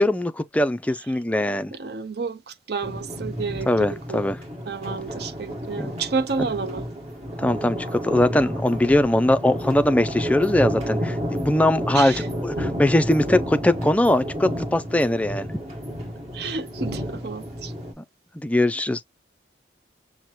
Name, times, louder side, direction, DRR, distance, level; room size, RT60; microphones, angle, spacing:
voice 1, 0.0-1.7 3.7-4.4 5.8-5.9 7.4-12.1 12.4-15.5 18.0-18.1 18.4-19.0, left 1 dB, 5° left, 0.3 m, -21 dB
voice 2, 1.7-4.3 4.7-6.9 11.9-12.3 16.3-17.7, right 4 dB, 55° right, 0.6 m, -30 dB
sound 1, 2.8-17.9, equal, 35° right, 1.6 m, -31 dB
5.7 x 2.1 x 3.1 m
head